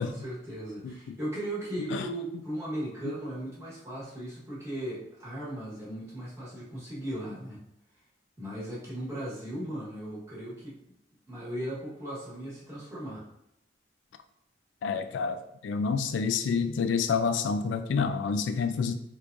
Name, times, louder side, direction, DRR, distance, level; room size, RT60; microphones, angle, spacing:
voice 1, 0.0-7.6 8.4-10.7 11.3-13.3, right 1 dB, 15° right, -7 dB, 1.1 m, -37 dB
voice 2, 0.8-1.2 1.9-2.0 14.8-18.9, left 5 dB, 90° left, 8 dB, 0.3 m, -28 dB
3.4 x 3.0 x 2.5 m, 0.79 s
head